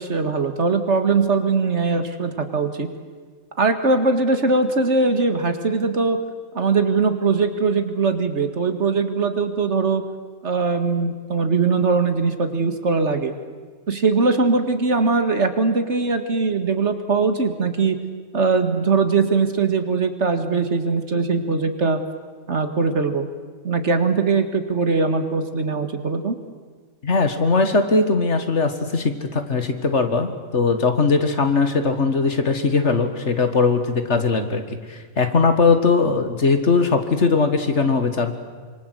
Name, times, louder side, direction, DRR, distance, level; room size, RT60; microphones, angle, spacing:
voice 1, 0.0-2.9 3.6-6.2 6.5-10.0 10.4-13.4 13.9-18.0 18.3-22.0 22.5-23.3 23.6-26.4, right 4 dB, 60° right, 8 dB, 2.1 m, -21 dB
voice 2, 27.0-34.6 34.9-38.3, left 4 dB, 60° left, 8 dB, 2.2 m, -20 dB
26.0 x 24.5 x 8.0 m, 1.5 s
omnidirectional pair, 1.4 m